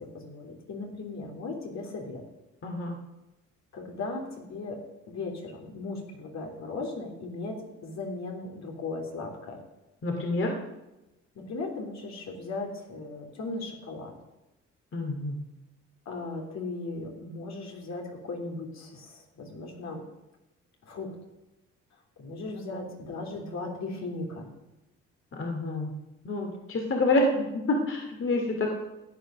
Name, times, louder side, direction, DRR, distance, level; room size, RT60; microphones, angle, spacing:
voice 1, 0.0-2.2 3.7-4.8 5.1-9.6 11.3-14.1 16.0-20.0 20.8-21.2 22.2-24.5, left 3 dB, 60° left, 1 dB, 3.4 m, -37 dB
voice 2, 2.6-3.0 10.0-10.5 14.9-15.3 25.3-25.9 26.2-28.7, left 2 dB, 45° left, 2 dB, 2.5 m, -27 dB
14.5 x 8.9 x 6.4 m, 0.99 s
cardioid pair, 90°, 30 cm